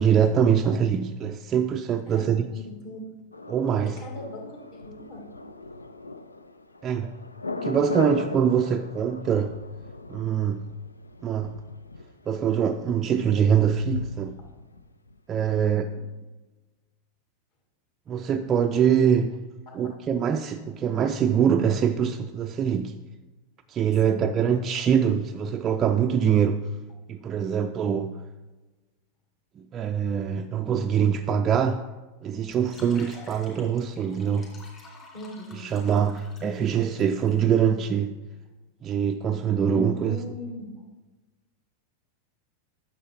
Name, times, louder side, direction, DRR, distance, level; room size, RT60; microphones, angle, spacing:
voice 1, 0.0-2.5 3.5-4.0 6.8-7.2 7.6-9.6 10.1-10.6 11.2-11.6 12.3-14.4 15.3-15.9 18.1-19.4 19.7-22.9 23.7-26.7 27.1-28.2 29.6-31.8 32.2-34.5 35.6-38.1 38.8-40.2, right 8 dB, 25° right, 0.4 m, -24 dB
voice 2, 2.1-3.0 3.8-5.3 15.5-16.0 19.7-19.9 24.0-24.3 35.1-35.7 39.9-40.8, left 1 dB, 45° left, 2.3 m, -41 dB
Thunder, 3.3-15.2 15.5-15.6, left 3 dB, 80° left, 0.4 m, -39 dB
sound 1, 32.5-37.4, left 3 dB, 25° left, 2.9 m, -50 dB
10.0 x 6.7 x 4.4 m
figure-of-eight pair, 90°, 0 cm